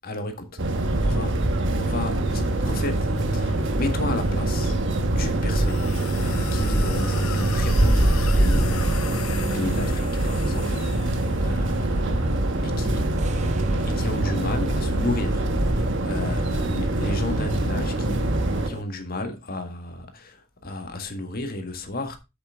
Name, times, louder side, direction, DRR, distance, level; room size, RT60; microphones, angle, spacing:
voice 1, 0.0-0.6 1.0-1.4 1.8-4.8 5.1-5.9 6.2-9.1 9.4-12.4 12.6-13.2 13.8-22.2, left 2 dB, 45° left, 1.7 m, -33 dB
sound 1, 0.6-18.7, right 1 dB, 60° right, 1.2 m, -23 dB
sound 2, 1.6-18.8, right 1 dB, 35° right, 0.9 m, -38 dB
sound 3, 5.5-11.5, left 9 dB, 80° left, 0.8 m, -38 dB
7.9 x 7.1 x 3.6 m
head